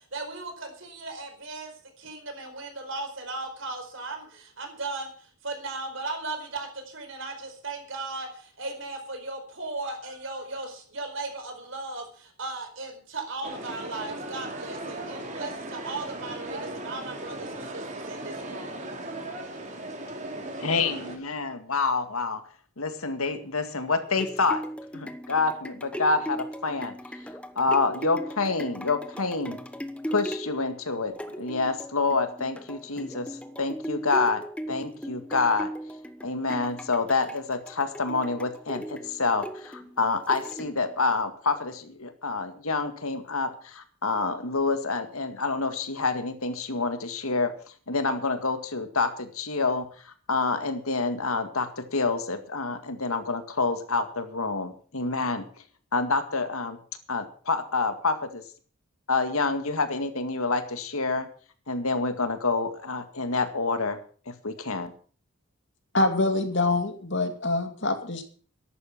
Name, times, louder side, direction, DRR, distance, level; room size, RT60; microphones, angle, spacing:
voice 1, 0.0-1.7 2.0-18.8, right 3 dB, 60° right, 5 dB, 4.6 m, -37 dB
sound 1, 13.4-21.2, right 1 dB, 35° right, 2.9 m, -37 dB
voice 2, 20.6-22.4 22.8-24.6 24.9-26.9 27.6-29.6 30.1-35.7 36.2-47.5 47.9-55.4 55.9-56.8 57.1-58.4 59.1-61.3 61.7-64.0 64.3-64.9, left 3 dB, 75° left, 8 dB, 2.0 m, -27 dB
sound 2, 23.9-41.0 41.5-41.6, equal, 5° left, 0.9 m, -38 dB
voice 3, 65.9-68.2, left 2 dB, 55° left, 6 dB, 2.4 m, -25 dB
14.0 x 11.5 x 6.0 m, 0.43 s
head